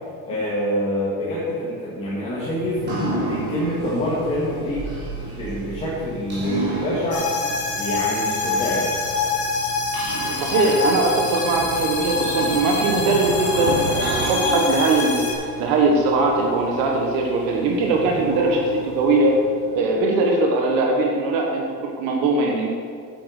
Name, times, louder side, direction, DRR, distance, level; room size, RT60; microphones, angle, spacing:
voice 1, 0.2-2.8 3.2-4.8 5.4-7.3 7.8-8.9, equal, 15° left, -8 dB, 2.1 m, -26 dB
sound 1, 2.6-20.5, right 2 dB, 25° right, 3.2 m, -33 dB
sound 2, 7.1-15.3, left 3 dB, 40° left, 2.2 m, -25 dB
Cricket / Motor vehicle (road), 7.2-14.3, right 7 dB, 85° right, 1.0 m, -34 dB
voice 2, 10.4-15.3 15.6-19.4 19.7-22.7, right 2 dB, 60° right, 1 dB, 1.3 m, -20 dB
8.7 x 8.1 x 6.5 m, 2.2 s
cardioid pair, 170°, 38 cm